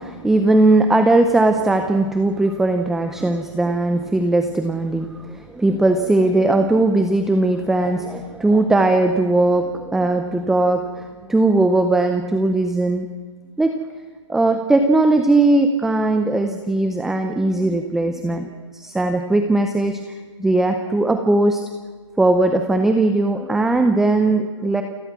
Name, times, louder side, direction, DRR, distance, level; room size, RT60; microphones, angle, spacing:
voice 1, 0.0-13.1 13.6-13.7 14.3-20.0 20.4-21.6 22.2-24.8, right 2 dB, ahead, 6 dB, 0.7 m, -18 dB
28.5 x 18.0 x 6.1 m, 1.5 s
hypercardioid pair, 155°, 16 cm